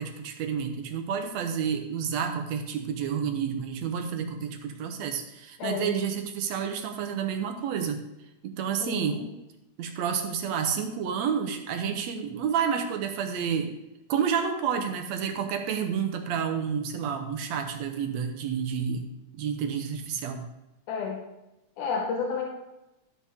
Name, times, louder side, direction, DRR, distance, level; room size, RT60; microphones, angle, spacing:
voice 1, 0.0-8.0 8.4-9.2 9.8-13.7 14.1-19.1 19.3-20.5, right 7 dB, 70° right, 5 dB, 2.0 m, -30 dB
voice 2, 5.6-6.0 8.8-9.3 20.9-21.2 21.8-22.5, left 5 dB, 90° left, 1 dB, 2.4 m, -31 dB
12.5 x 7.0 x 3.6 m, 0.93 s
omnidirectional pair, 3.5 m